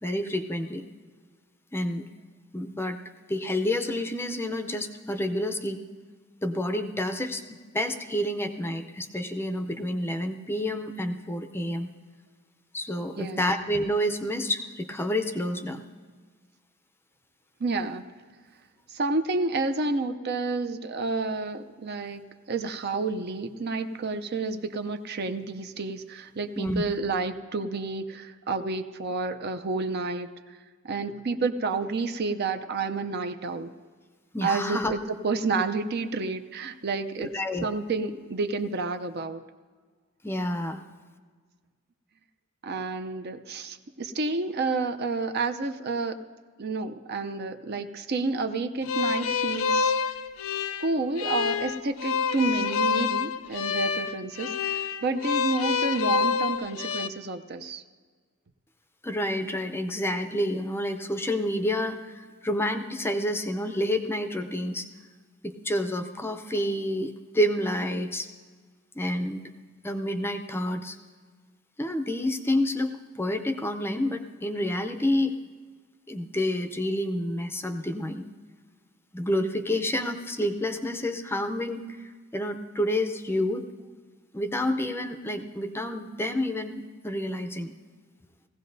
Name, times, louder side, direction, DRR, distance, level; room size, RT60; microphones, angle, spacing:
voice 1, 0.0-0.8 1.7-2.1 2.5-3.0 3.3-5.8 6.4-7.4 7.7-11.9 12.7-15.9 26.6-26.8 34.3-34.9 37.2-37.6 40.2-40.8 59.0-64.9 65.4-68.3 68.9-69.4 69.8-71.0 71.8-75.3 76.1-78.3 79.1-83.6 84.3-87.7, left 1 dB, 10° left, 6 dB, 0.5 m, -29 dB
voice 2, 13.2-13.5 17.6-18.0 18.9-22.2 22.5-30.6 30.8-33.7 34.4-35.0 35.2-37.3 37.6-39.4 42.6-46.2 46.6-49.9 50.8-57.8, right 3 dB, 50° right, 8 dB, 0.6 m, -30 dB
sound 1, 48.8-57.1, left 6 dB, 70° left, 0.4 m, -27 dB
19.5 x 16.0 x 2.6 m, 1.6 s
head